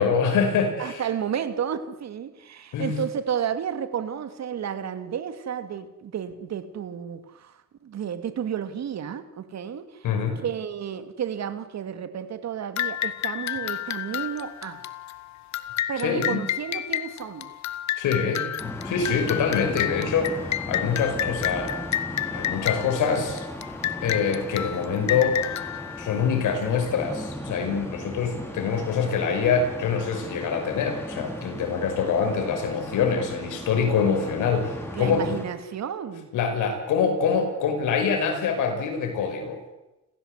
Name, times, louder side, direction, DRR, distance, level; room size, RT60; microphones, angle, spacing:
voice 1, 0.0-1.0 2.7-2.9 10.0-10.4 16.0-16.4 18.0-21.8 22.3-23.4 24.0-25.4 26.0-35.4 36.3-39.6, left 6 dB, 85° left, 5.9 m, -25 dB
voice 2, 0.8-10.1 10.4-14.9 15.9-17.5 34.9-36.3, right 8 dB, 60° right, 2.4 m, -32 dB
sound 1, 12.8-26.9, left 11 dB, 65° left, 1.4 m, -31 dB
sound 2, 18.6-35.5, left 1 dB, 10° left, 5.9 m, -37 dB
29.5 x 16.0 x 8.2 m
cardioid pair, 90°, 30 cm